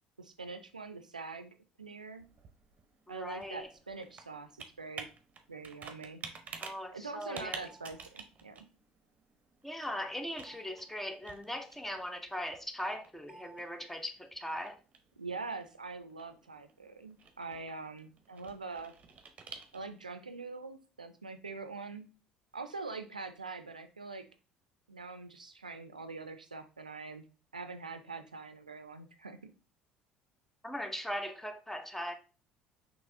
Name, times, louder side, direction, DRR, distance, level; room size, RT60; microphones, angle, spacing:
voice 1, 0.2-2.3 3.1-5.1 5.5-6.2 6.9-8.7 15.2-18.9 19.7-22.1 22.5-24.3 24.9-27.2 27.5-29.5, right 4 dB, 90° right, 0.4 m, -44 dB
Computer keyboard, 1.8-20.1, right 5 dB, 35° right, 0.7 m, -51 dB
voice 2, 3.1-3.7 6.6-7.7 9.6-14.8 30.6-32.1, equal, 5° left, 0.7 m, -39 dB
6.0 x 2.9 x 2.6 m
figure-of-eight pair, 60°, 4 cm